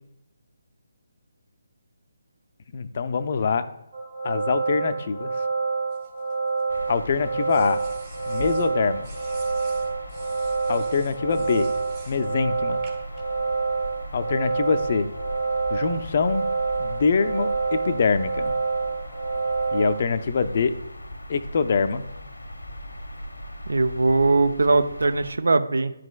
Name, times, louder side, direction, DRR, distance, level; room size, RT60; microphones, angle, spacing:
voice 1, 2.7-3.7 4.2-5.3 6.9-7.8 8.3-9.1 10.7-11.7 12.1-12.8 14.1-15.1 15.7-16.4 16.8-18.5 19.7-20.8 21.3-22.1, left 5 dB, 40° left, 10 dB, 0.4 m, -24 dB
sound 1, 3.9-20.0, right 4 dB, 45° right, 1.9 m, -27 dB
sound 2, 5.9-6.9 7.5-8.7 9.0-12.2 12.8-13.2, right 5 dB, 30° right, 1.0 m, -49 dB
sound 3, 6.7-25.3, left 1 dB, 75° left, 0.8 m, -39 dB
voice 2, 23.7-25.9, right 3 dB, 65° right, 10 dB, 0.5 m, -20 dB
10.5 x 4.9 x 2.3 m, 0.82 s
figure-of-eight pair, 145°, 0 cm